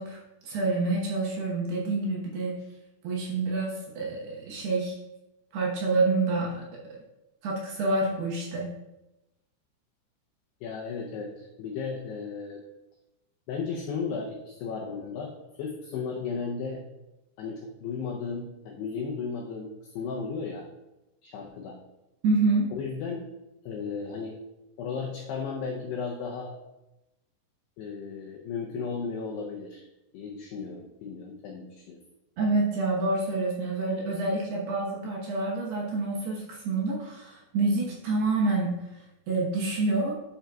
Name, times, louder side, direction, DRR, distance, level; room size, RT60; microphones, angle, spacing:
voice 1, 0.0-2.6 3.0-5.0 5.5-6.7 7.4-8.7 22.2-22.7 32.4-40.2, right 3 dB, 70° right, -3 dB, 2.7 m, -27 dB
voice 2, 10.6-12.6 13.5-16.8 17.4-20.6 21.2-21.8 22.7-23.2 23.7-24.4 24.8-26.5 27.8-29.9 30.1-32.0, left 5 dB, 90° left, -1 dB, 2.3 m, -35 dB
11.5 x 6.3 x 2.3 m, 0.96 s
omnidirectional pair, 5.8 m